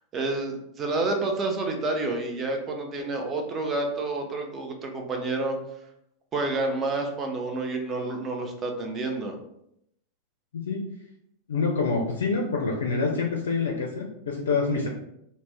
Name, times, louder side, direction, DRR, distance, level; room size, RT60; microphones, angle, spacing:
voice 1, 0.1-5.6 6.3-9.3, right 2 dB, 25° right, 3 dB, 0.5 m, -29 dB
voice 2, 11.5-14.9, left 4 dB, 65° left, 0 dB, 0.4 m, -26 dB
2.5 x 2.0 x 3.4 m, 0.77 s
figure-of-eight pair, 90°, 0 cm